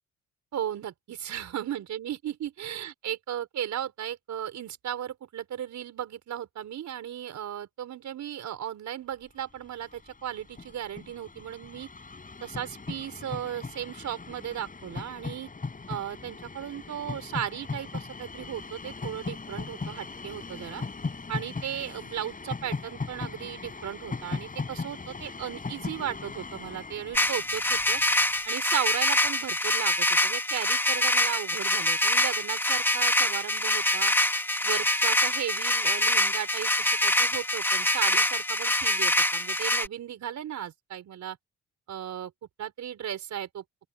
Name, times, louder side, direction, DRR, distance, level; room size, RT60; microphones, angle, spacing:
voice 1, 0.5-11.9 12.4-15.5 15.9-20.8 21.3-28.0 28.5-34.1 34.6-41.4 41.9-42.3 42.6-43.6, right 10 dB, 65° right, 4.9 m, -36 dB
Train, 9.6-9.7 9.8-28.2, left 4 dB, 25° left, 5.7 m, -39 dB
sound 1, 27.1-39.9, left 1 dB, 5° left, 2.7 m, -25 dB
open air
cardioid pair, 90°, 30 cm